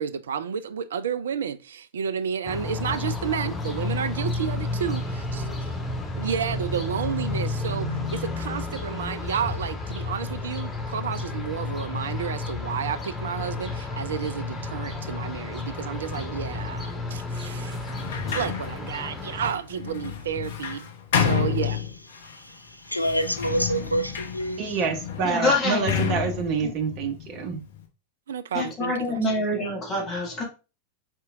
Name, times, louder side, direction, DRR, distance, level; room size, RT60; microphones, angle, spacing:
voice 1, 0.0-5.0 5.3-5.4 6.2-17.9 18.3-21.9 28.3-29.2, right 7 dB, 65° right, 0.3 m, -31 dB
sound 1, 2.4-19.5, left 2 dB, 10° left, 0.9 m, -31 dB
Sliding door, 17.8-22.3 23.0-27.8, left 7 dB, 55° left, 0.7 m, -30 dB
voice 2, 22.2-24.8, right 1 dB, 90° left, 0.5 m, -28 dB
voice 3, 24.6-27.6, right 5 dB, 40° right, 0.8 m, -27 dB
voice 4, 25.2-26.7 28.5-30.4, left 2 dB, 30° left, 1.9 m, -27 dB
4.5 x 4.3 x 2.4 m
figure-of-eight pair, 90°, 0 cm